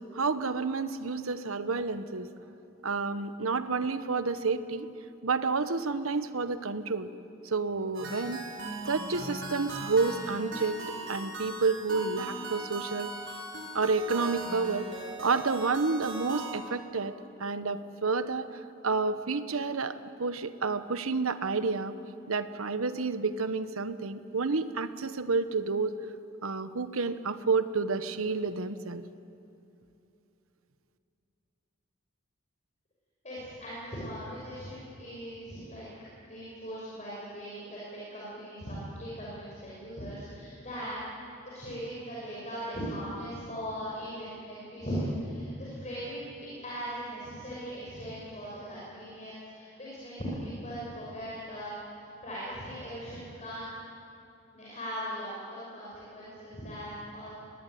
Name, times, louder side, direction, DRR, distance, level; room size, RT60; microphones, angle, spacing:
voice 1, 0.0-2.3 2.8-4.9 5.2-7.1 7.4-8.4 8.8-10.8 11.1-13.1 13.7-14.9 15.2-17.1 17.4-18.5 18.8-21.9 22.3-25.9 26.4-29.0, right 4 dB, 75° right, 12 dB, 1.1 m, -30 dB
sound 1, 7.9-16.5, right 2 dB, 60° right, 6.1 m, -39 dB
voice 2, 33.2-35.9 36.2-37.8 38.1-41.0 41.4-46.3 46.6-50.1 50.4-51.7 52.2-53.7 54.5-57.3, equal, 35° left, -7 dB, 6.2 m, -39 dB
24.0 x 19.5 x 9.4 m, 2.8 s
head